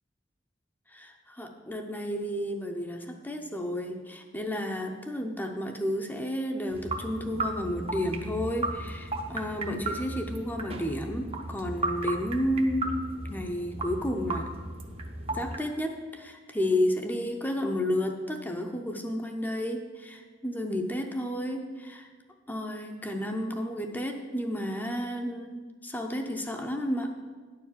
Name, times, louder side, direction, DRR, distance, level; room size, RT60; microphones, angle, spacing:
voice 1, 0.9-14.5 15.3-22.1 22.5-27.1, left 1 dB, 10° left, 3 dB, 0.6 m, -32 dB
sound 1, 6.7-15.6, right 2 dB, 30° right, 0.7 m, -35 dB
9.7 x 4.7 x 7.2 m, 1.5 s
head